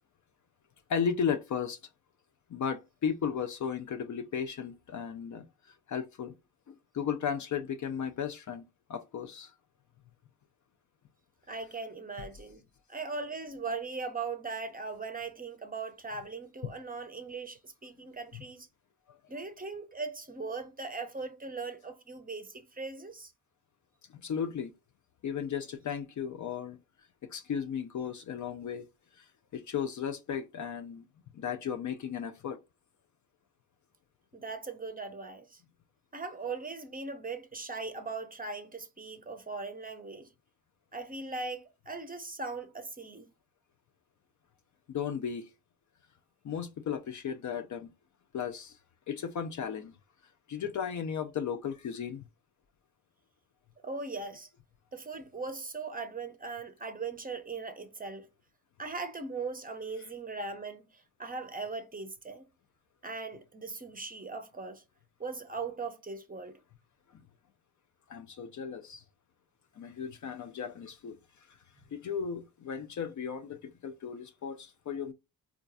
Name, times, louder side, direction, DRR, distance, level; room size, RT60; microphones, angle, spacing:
voice 1, 0.9-1.8 2.5-5.5 5.9-6.3 6.9-8.6 8.9-9.5 18.3-18.4 24.1-24.7 25.2-26.8 27.3-28.8 29.2-29.3 29.5-31.0 31.3-32.6 44.9-45.5 46.4-47.9 48.3-48.8 49.1-49.9 50.5-52.2 60.0-60.1 68.1-69.0 69.8-71.2 71.9-75.1, left 7 dB, 45° left, 0.4 m, -35 dB
voice 2, 11.5-12.6 12.9-18.7 19.3-23.3 34.3-35.6 36.1-40.3 40.9-43.3 53.8-54.5 54.9-58.3 58.8-62.4 63.0-64.8 65.2-66.6, right 4 dB, 20° right, 0.6 m, -39 dB
3.7 x 2.3 x 2.5 m
supercardioid pair, 45°, 42 cm